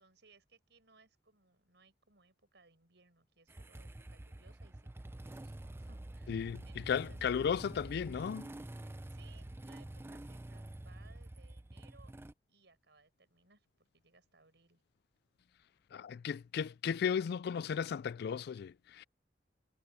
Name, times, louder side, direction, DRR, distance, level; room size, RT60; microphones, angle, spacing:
voice 1, 0.0-7.2 8.8-12.1 12.5-14.8, right 4 dB, 70° right, 7.7 m, -66 dB
Motorcycle / Engine starting, 3.5-12.3, right 1 dB, 15° right, 0.4 m, -48 dB
voice 2, 6.3-8.5 15.9-19.0, left 7 dB, 60° left, 0.3 m, -35 dB
head